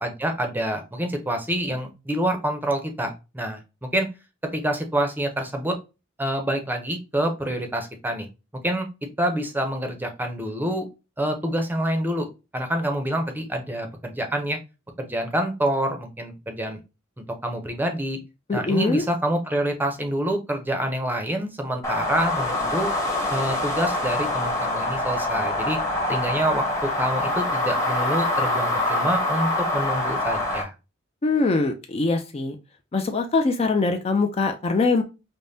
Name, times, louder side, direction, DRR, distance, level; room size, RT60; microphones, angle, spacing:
voice 1, 0.0-4.1 4.4-5.8 6.2-8.3 8.6-8.9 9.2-10.9 11.2-14.6 15.0-16.8 17.4-18.2 18.5-22.9 23.3-25.8 26.1-30.7, right 1 dB, 10° right, 5 dB, 0.6 m, -27 dB
voice 2, 18.5-19.0 31.2-32.6 32.9-35.0, left 3 dB, 30° left, 5 dB, 0.4 m, -22 dB
sound 1, 21.8-30.6, left 2 dB, 15° left, 0.9 m, -25 dB
5.1 x 2.1 x 2.6 m, 0.28 s
head